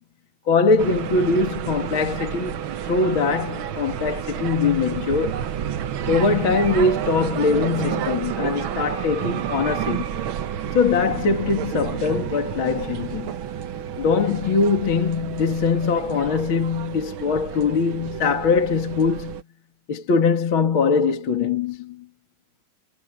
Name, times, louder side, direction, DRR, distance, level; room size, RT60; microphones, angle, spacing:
voice 1, 0.5-2.6 2.9-5.4 6.1-10.0 10.7-13.4 14.0-19.4 19.9-22.0, left 4 dB, 45° left, 2.6 m, -22 dB
sound 1, 0.8-19.4, right 9 dB, 65° right, 1.3 m, -30 dB
omnidirectional pair, 3.5 m